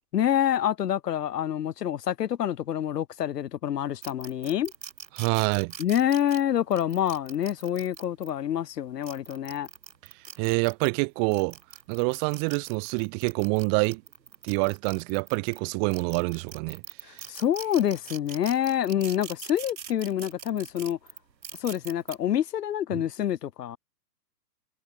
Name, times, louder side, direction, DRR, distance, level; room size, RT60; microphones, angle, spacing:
voice 1, 0.1-4.7 5.8-9.7 17.1-21.0 21.6-23.8, left 10 dB, 70° left, 1.6 m, -27 dB
sound 1, 4.0-8.3 8.9-10.9 11.3-15.6 15.9-22.2, right 7 dB, 90° right, 3.7 m, -43 dB
voice 2, 5.1-5.7 10.4-11.5 11.9-14.0 14.4-17.3 22.9-23.0, right 40 dB or more, 15° right, 0.6 m, -27 dB
hypercardioid pair, 145°, 49 cm